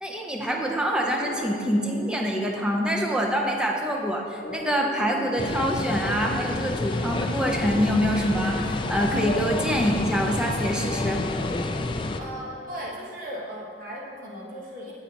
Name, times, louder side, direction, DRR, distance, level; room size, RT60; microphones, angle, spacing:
voice 1, 0.0-11.2, equal, 5° right, 0 dB, 0.7 m, -25 dB
sound 1, 1.2-12.6, left 1 dB, 65° left, 0.9 m, -41 dB
sound 2, 5.4-12.2, left 2 dB, 25° left, 0.3 m, -29 dB
voice 2, 12.2-14.9, equal, 50° right, -5 dB, 1.2 m, -37 dB
8.8 x 8.2 x 3.0 m, 2.2 s
head